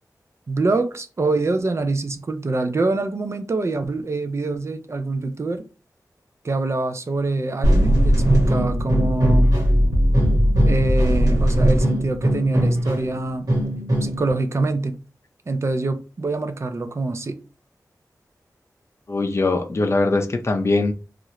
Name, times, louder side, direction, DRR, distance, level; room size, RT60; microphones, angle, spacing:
voice 1, 0.5-5.6 6.4-9.5 10.7-13.5 14.0-15.0 15.5-17.4, right 3 dB, 45° right, 0.4 m, -25 dB
sound 1, 7.6-14.3, equal, 70° right, 1.2 m, -18 dB
voice 2, 19.1-20.9, left 3 dB, 45° left, 0.5 m, -21 dB
2.8 x 2.5 x 3.1 m
wide cardioid pair, 105°, 7 cm